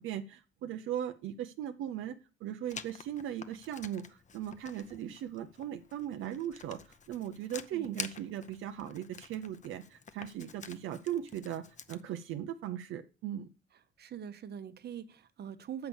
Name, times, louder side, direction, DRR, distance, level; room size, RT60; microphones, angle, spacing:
voice 1, 0.0-2.1 2.4-11.6 11.9-13.5, right 10 dB, 85° right, 7 dB, 0.6 m, -38 dB
Writing, 2.7-12.0, left 6 dB, 40° left, 0.7 m, -49 dB
voice 2, 14.0-15.9, right 8 dB, 55° right, 11 dB, 1.0 m, -43 dB
7.0 x 5.8 x 7.0 m, 0.35 s
cardioid pair, 90°, 20 cm